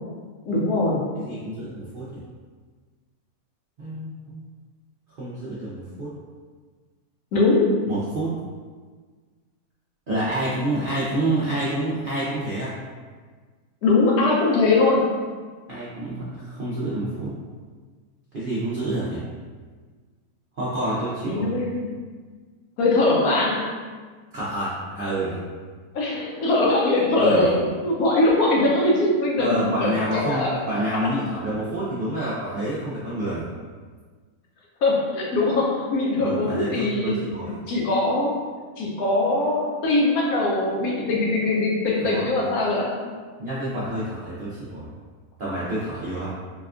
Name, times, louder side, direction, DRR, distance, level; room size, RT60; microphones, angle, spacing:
voice 1, 0.5-1.1 7.3-7.7 13.8-15.1 21.3-21.9 22.8-23.7 25.9-30.5 31.0-31.1 34.8-37.2 37.7-38.4 38.8-43.0, left 2 dB, 75° left, -2 dB, 1.1 m, -21 dB
voice 2, 1.2-2.2 3.8-4.4 5.2-6.1 7.9-8.3 10.1-12.7 15.7-17.3 18.3-19.2 20.6-21.5 24.3-25.4 27.2-27.5 29.4-33.5 36.2-37.5 42.0-42.3 43.4-44.9 45.4-46.3, right 1 dB, 60° right, -10 dB, 0.5 m, -28 dB
4.0 x 2.3 x 2.4 m, 1.5 s
omnidirectional pair, 1.6 m